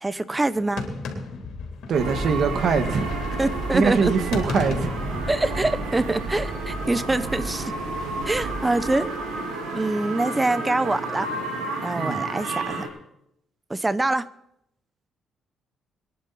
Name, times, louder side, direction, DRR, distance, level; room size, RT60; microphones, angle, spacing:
voice 1, 0.0-0.8 3.4-4.1 5.3-7.7 8.2-9.1 9.7-11.3 11.8-12.9 13.7-14.3, right 2 dB, 15° right, 16 dB, 0.8 m, -24 dB
sound 1, 0.5-7.0 7.2-12.5, left 3 dB, 80° left, 3.3 m, -38 dB
voice 2, 1.9-3.1 3.7-4.9 11.9-12.3, right 5 dB, 60° right, 8 dB, 1.8 m, -23 dB
sound 2, 1.9-12.9, right 3 dB, 90° right, 3.6 m, -30 dB
23.0 x 10.5 x 4.2 m, 0.79 s
cardioid pair, 90°, 0 cm